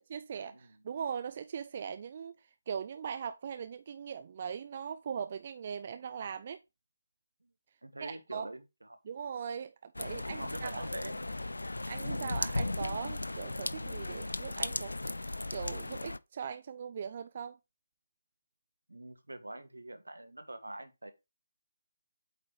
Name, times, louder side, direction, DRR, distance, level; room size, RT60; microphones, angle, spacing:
voice 1, 0.1-6.6 8.0-8.5 9.1-10.9 11.9-14.9 15.5-17.6, right 7 dB, 35° right, 0.3 m, -40 dB
voice 2, 7.8-9.0 10.0-11.2 12.7-12.9 18.9-21.1, right 1 dB, 75° right, 1.3 m, -45 dB
sound 1, 9.9-16.2, left 2 dB, 75° left, 0.3 m, -36 dB
8.3 x 4.8 x 3.2 m
figure-of-eight pair, 150°, 0 cm